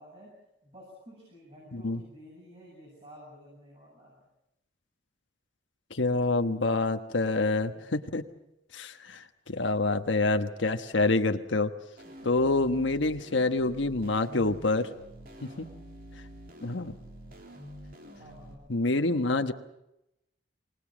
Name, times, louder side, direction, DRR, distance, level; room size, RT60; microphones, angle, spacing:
voice 1, 0.0-4.3 6.0-6.4 7.7-8.0 12.0-12.3 15.3-15.7 18.2-19.1, equal, 30° right, -4 dB, 7.7 m, -52 dB
voice 2, 5.9-8.2 8.7-11.7 12.2-14.9 15.6-15.7 16.6-17.0 18.7-19.5, left 2 dB, 85° left, 7 dB, 1.2 m, -27 dB
sound 1, 12.0-18.5, equal, 50° right, 2.9 m, -48 dB
25.0 x 19.5 x 7.5 m, 0.85 s
head